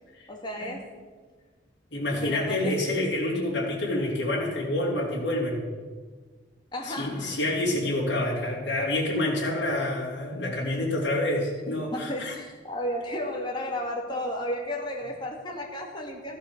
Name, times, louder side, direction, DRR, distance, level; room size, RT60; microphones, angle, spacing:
voice 1, 0.3-0.9 2.2-2.8 6.7-7.4 11.9-16.4, equal, 25° left, 0 dB, 2.3 m, -33 dB
voice 2, 1.9-5.7 6.8-12.3, left 1 dB, 70° left, -4 dB, 3.5 m, -28 dB
14.5 x 10.0 x 6.8 m, 1.4 s
head